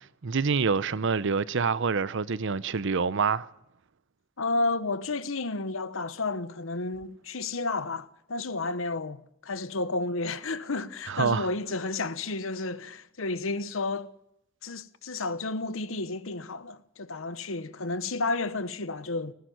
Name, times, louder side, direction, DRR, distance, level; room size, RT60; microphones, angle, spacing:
voice 1, 0.2-3.5 11.1-11.5, right 5 dB, 60° right, 0.7 m, -26 dB
voice 2, 4.4-14.1 14.6-19.3, left 3 dB, 70° left, 1.0 m, -31 dB
19.0 x 14.5 x 9.3 m
head